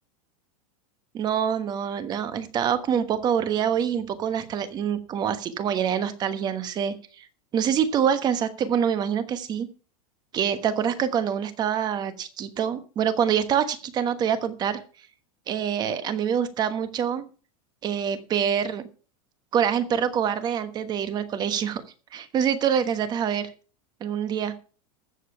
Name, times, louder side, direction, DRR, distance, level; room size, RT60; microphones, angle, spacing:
voice 1, 1.1-7.3 7.5-9.7 10.3-14.8 15.5-17.2 17.8-18.9 19.5-21.8 22.1-23.5 24.0-24.5, right 8 dB, 25° right, 11 dB, 1.2 m, -25 dB
14.0 x 7.5 x 5.8 m, 0.37 s
supercardioid pair, 165°, 18 cm